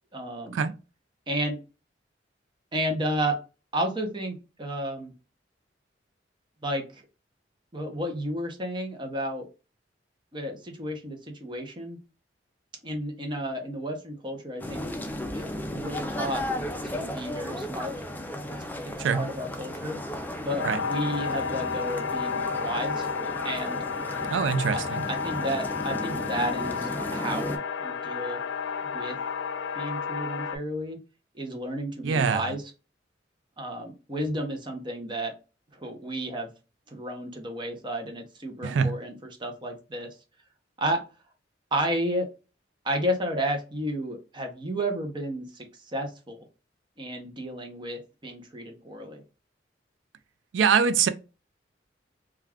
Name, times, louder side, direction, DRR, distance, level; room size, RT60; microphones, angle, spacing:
voice 1, 0.1-0.6 1.3-1.6 2.7-3.4 3.7-5.1 6.6-7.0 7.7-9.5 10.3-12.0 12.8-14.8 15.3-16.4 16.8-17.9 18.8-20.0 20.4-23.1 23.4-23.8 24.7-24.8 25.1-28.4 28.9-29.2 29.8-31.0 31.3-32.6 33.6-35.3 35.8-36.5 36.9-40.1 40.8-41.0 41.7-42.3 42.8-45.6 45.9-46.4 47.0-49.2, equal, 25° right, 0.6 m, -32 dB
sound 1, 14.6-27.6, left 1 dB, 10° left, 0.3 m, -35 dB
sound 2, 20.6-30.6, left 5 dB, 90° left, 0.3 m, -32 dB
voice 2, 24.3-25.0 32.0-32.6 38.6-39.0 50.5-51.1, right 6 dB, 80° right, 0.3 m, -24 dB
2.3 x 2.3 x 3.3 m
head